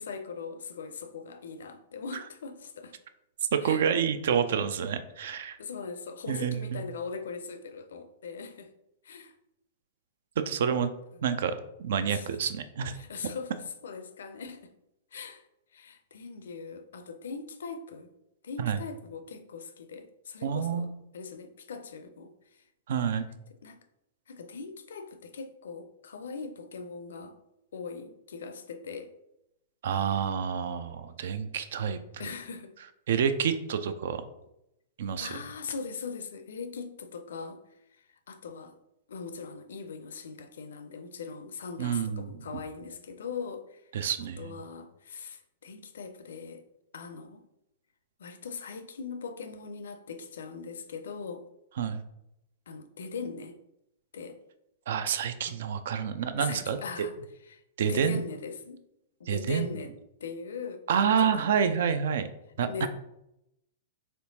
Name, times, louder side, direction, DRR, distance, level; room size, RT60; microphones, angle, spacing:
voice 1, 0.0-3.0 3.6-3.8 5.6-8.7 9.0-9.3 12.1-12.4 12.9-13.6 13.8-14.7 15.1-15.4 15.7-18.1 18.4-22.6 23.6-23.8 24.3-27.4 27.7-29.1 32.2-32.7 35.2-37.6 37.9-38.8 39.1-43.8 44.4-46.6 46.9-47.5 48.2-51.4 52.7-53.6 54.1-54.4 55.4-55.6 56.4-57.2 57.5-58.8 59.2-59.9 60.2-61.7 62.7-62.9, left 5 dB, 65° left, 10 dB, 0.4 m, -40 dB
voice 2, 3.5-5.6 6.3-6.8 10.4-10.9 11.2-12.9 18.6-18.8 20.4-20.9 22.9-23.3 29.8-32.2 33.1-34.2 35.0-35.3 41.8-42.3 43.9-44.5 51.8-52.0 54.9-56.8 57.8-58.2 59.3-59.7 60.9-62.3 62.6-62.9, right 7 dB, 60° right, 11 dB, 0.4 m, -28 dB
4.4 x 3.4 x 2.6 m, 0.85 s
figure-of-eight pair, 105°, 0 cm